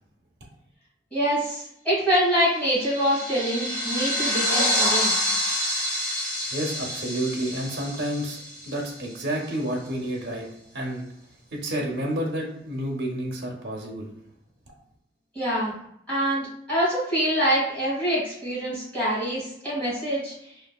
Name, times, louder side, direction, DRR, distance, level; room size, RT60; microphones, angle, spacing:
voice 1, 1.1-5.2 15.3-15.7 16.1-20.3, equal, 5° left, -9 dB, 1.5 m, -25 dB
sound 1, 2.3-9.2, left 1 dB, 80° left, 0.7 m, -27 dB
voice 2, 6.5-8.4 8.6-10.4 10.7-11.0 11.5-14.1, right 1 dB, 65° right, -1 dB, 0.5 m, -29 dB
3.0 x 2.3 x 2.3 m, 0.74 s
head